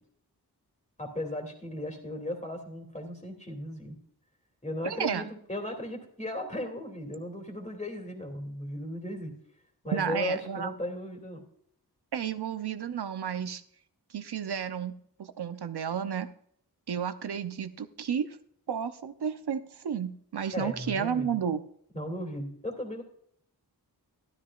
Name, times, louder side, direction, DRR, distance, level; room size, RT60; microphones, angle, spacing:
voice 1, 1.0-4.0 4.6-9.3 9.8-11.4 20.5-21.4 21.9-23.0, left 1 dB, 15° left, 2 dB, 2.6 m, -36 dB
voice 2, 4.8-5.3 9.9-10.7 12.1-13.6 14.1-16.3 16.9-18.4 18.7-21.6, right 8 dB, 70° right, 10 dB, 0.8 m, -32 dB
12.5 x 12.5 x 2.5 m, 0.65 s
wide cardioid pair, 95°, 40 cm